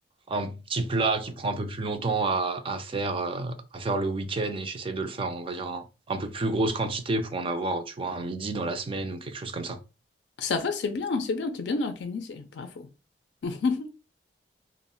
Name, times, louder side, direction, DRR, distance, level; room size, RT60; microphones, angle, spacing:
voice 1, 0.3-9.8, right 3 dB, 30° right, 0.4 m, -29 dB
voice 2, 10.4-12.9 13.4-13.9, left 4 dB, 75° left, 0.4 m, -29 dB
2.1 x 2.0 x 3.7 m
head